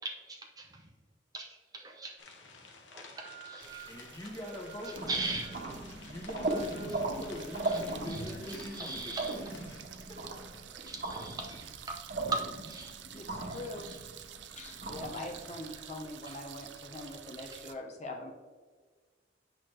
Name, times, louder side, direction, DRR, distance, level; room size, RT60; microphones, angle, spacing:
voice 1, 0.0-0.9 1.3-2.1 2.9-4.0 4.8-5.7 6.5-6.9 7.7-7.8 8.1-9.4 10.7-11.6 11.9-12.0 12.3-13.0 13.5-13.6 13.9-14.0 14.5-14.7 15.1-15.3 17.5-17.6, right 3 dB, 20° right, 2 dB, 0.6 m, -40 dB
sound 1, 2.2-9.8, left 4 dB, 90° left, 1.1 m, -52 dB
sound 2, 3.6-17.7, right 9 dB, 70° right, 0.5 m, -50 dB
voice 2, 3.8-5.6 6.0-9.2 9.7-10.2, left 1 dB, 20° left, 1 dB, 1.2 m, -43 dB
sound 3, 5.0-16.1, right 2 dB, 50° right, 1.2 m, -38 dB
voice 3, 13.1-13.9 14.6-18.3, left 2 dB, 35° left, 2 dB, 0.7 m, -43 dB
8.2 x 5.9 x 3.2 m, 1.5 s
head